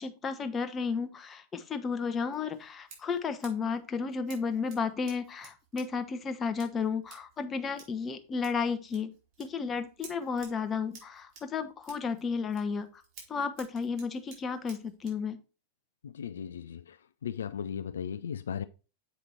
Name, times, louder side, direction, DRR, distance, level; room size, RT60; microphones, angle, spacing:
voice 1, 0.0-12.9 13.3-15.4, left 5 dB, 20° left, 0.9 m, -33 dB
Scissors, 2.3-15.2, right 5 dB, 45° right, 3.7 m, -56 dB
voice 2, 16.0-17.0 17.2-18.6, left 8 dB, 65° left, 0.3 m, -36 dB
7.7 x 4.9 x 4.3 m
figure-of-eight pair, 90°, 0 cm